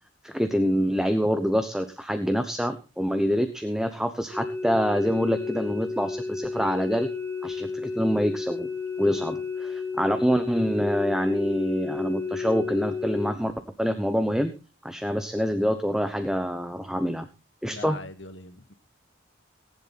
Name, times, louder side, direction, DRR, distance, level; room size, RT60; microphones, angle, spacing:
voice 1, 0.2-7.1 7.4-8.7 9.0-13.5 13.8-14.5 14.8-17.3 17.6-18.0, equal, 5° right, 8 dB, 1.0 m, -26 dB
sound 1, 4.3-13.3, left 4 dB, 20° left, 3.4 m, -32 dB
voice 2, 17.7-18.7, left 3 dB, 70° left, 9 dB, 2.0 m, -41 dB
19.0 x 10.5 x 4.2 m, 0.32 s
head